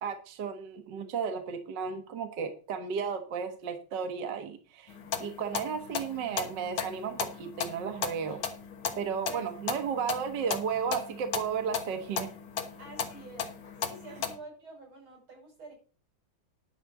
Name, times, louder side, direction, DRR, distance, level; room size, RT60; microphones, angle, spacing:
voice 1, 0.0-8.4 9.0-12.3, right 6 dB, 60° right, 7 dB, 1.7 m, -34 dB
sound 1, 4.9-14.3, left 7 dB, 90° left, 2.3 m, -37 dB
voice 2, 12.8-15.7, right 3 dB, 90° right, 1 dB, 6.7 m, -48 dB
11.0 x 5.8 x 6.8 m, 0.38 s
omnidirectional pair, 2.2 m